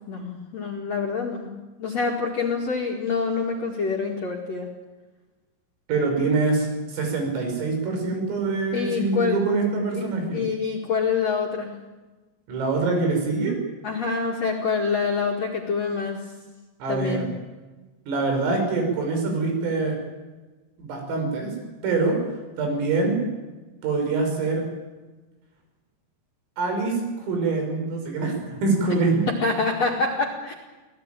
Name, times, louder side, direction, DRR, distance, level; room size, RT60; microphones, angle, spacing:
voice 1, 0.1-1.5 1.8-4.7 8.7-9.4 9.9-11.7 13.8-16.2 16.9-17.3 29.3-30.5, left 5 dB, 50° left, 0 dB, 2.1 m, -26 dB
voice 2, 5.9-10.5 12.5-13.6 16.8-17.3 18.1-20.0 20.8-21.5 21.8-22.2 22.6-23.2 23.8-24.7 26.6-29.3, right 3 dB, 90° right, 3 dB, 8.3 m, -24 dB
25.5 x 18.0 x 9.1 m, 1.2 s
omnidirectional pair, 5.8 m